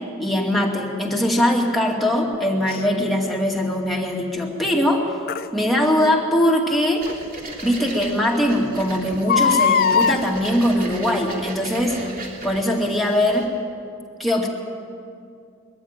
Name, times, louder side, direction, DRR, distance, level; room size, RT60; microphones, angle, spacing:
voice 1, 0.2-5.1 5.5-7.1 7.6-12.0 12.4-13.5 14.2-14.5, left 1 dB, ahead, -2 dB, 2.2 m, -21 dB
Crying sobbing, 2.7-2.8 5.3-5.5 7.1-7.2 7.7-7.8 8.0-8.1 9.1-10.2 11.2-11.5 12.1-12.2, left 6 dB, 45° left, 0.5 m, -20 dB
sound 1, 7.0-13.5, right 2 dB, 40° right, 3.1 m, -37 dB
21.5 x 14.5 x 8.9 m, 2.4 s
head